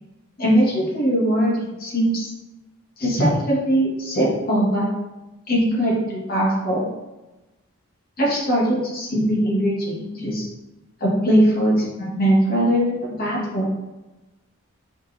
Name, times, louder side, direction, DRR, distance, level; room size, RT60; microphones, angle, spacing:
voice 1, 0.4-2.3 3.0-4.9 5.5-6.8 8.2-10.5 11.0-13.7, equal, 40° left, -6 dB, 2.2 m, -21 dB
5.2 x 4.6 x 4.5 m, 1.0 s
head